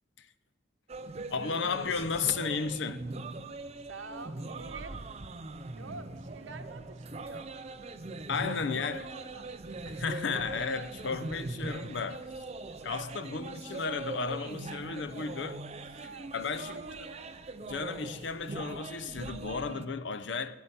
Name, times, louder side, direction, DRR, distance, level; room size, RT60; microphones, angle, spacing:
sound 1, 0.9-19.9, right 2 dB, 35° right, 0.5 m, -41 dB
voice 1, 1.3-3.0 8.3-9.1 9.9-12.2 12.8-15.6 16.3-17.1 17.6-20.6, left 5 dB, 65° left, 0.6 m, -34 dB
voice 2, 3.8-5.0 5.7-7.5 8.2-8.8 9.0-9.5 9.8-10.1 12.8-13.9 15.9-17.0, right 3 dB, 85° right, 1.0 m, -48 dB
10.0 x 8.3 x 8.2 m
head